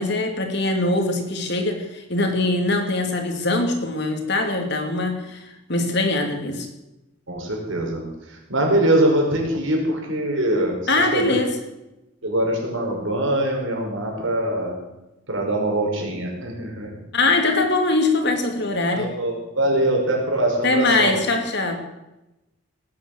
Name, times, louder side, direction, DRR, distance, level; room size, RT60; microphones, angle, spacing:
voice 1, 0.0-6.7 10.9-11.6 17.1-19.1 20.6-21.8, left 2 dB, 55° left, 4 dB, 2.9 m, -22 dB
voice 2, 7.3-8.0 8.5-11.4 12.2-14.8 15.3-16.9 18.9-21.2, right 1 dB, 70° right, 0 dB, 5.3 m, -23 dB
18.5 x 9.6 x 7.9 m, 0.96 s
head